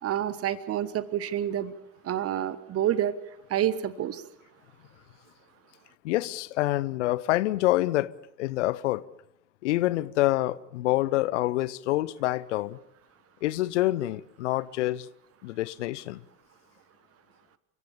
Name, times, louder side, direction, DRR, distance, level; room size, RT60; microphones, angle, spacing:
voice 1, 0.0-1.7 2.0-3.1 3.5-4.2, right 11 dB, 35° right, 1.3 m, -28 dB
voice 2, 6.0-8.1 8.4-9.0 9.6-12.8 13.4-15.1 15.4-16.2, left 17 dB, 60° left, 0.8 m, -27 dB
29.5 x 16.5 x 7.1 m
figure-of-eight pair, 65°, 40 cm